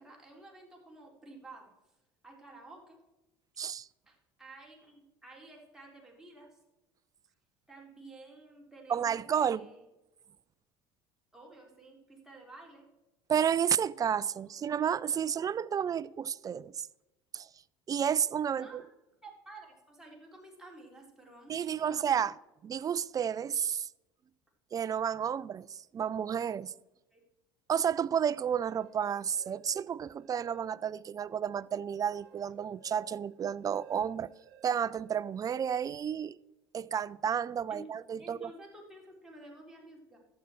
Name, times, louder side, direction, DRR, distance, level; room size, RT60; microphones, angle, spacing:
voice 1, 0.0-1.9 2.2-3.0 4.1-6.6 7.7-9.8 11.3-12.9 18.5-18.9 19.2-22.3 27.1-27.2 37.7-37.9 38.2-40.2, right 2 dB, 5° right, 3.7 m, -52 dB
voice 2, 3.6-3.9 8.9-9.7 13.3-16.9 17.3-17.5 17.9-18.8 21.5-22.3 22.6-23.9 24.7-26.7 27.7-34.3 34.6-36.4 36.7-38.5, right 8 dB, 30° right, 0.4 m, -31 dB
sound 1, 28.4-31.0 31.5-35.8, right 9 dB, 80° right, 0.9 m, -60 dB
11.5 x 8.3 x 4.4 m
hypercardioid pair, 80°, 12 cm